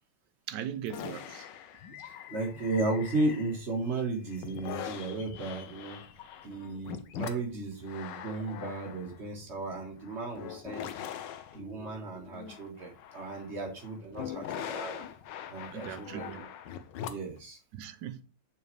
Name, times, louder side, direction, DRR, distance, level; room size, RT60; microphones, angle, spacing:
voice 1, 0.5-1.5 15.7-16.4 17.7-18.2, right 9 dB, 80° right, 1.3 m, -39 dB
sound 1, 0.9-3.8 4.3-17.4, left 9 dB, 90° left, 1.3 m, -42 dB
voice 2, 1.9-6.0 6.4-11.0 11.5-15.0 15.5-16.5 17.1-17.6, right 2 dB, 40° right, 1.7 m, -35 dB
6.8 x 4.2 x 3.3 m
omnidirectional pair, 1.9 m